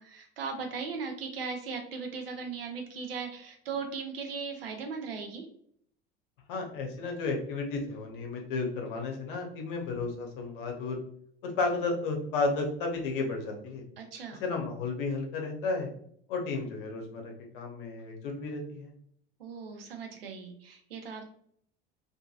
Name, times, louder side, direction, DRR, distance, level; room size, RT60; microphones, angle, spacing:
voice 1, 0.0-5.5 14.0-14.4 19.4-21.2, right 5 dB, 75° right, 4 dB, 0.6 m, -38 dB
voice 2, 6.5-11.0 11.4-13.8 14.4-15.9 16.3-18.9, left 3 dB, 60° left, 2 dB, 0.8 m, -33 dB
2.8 x 2.5 x 2.3 m, 0.64 s
figure-of-eight pair, 70°, 29 cm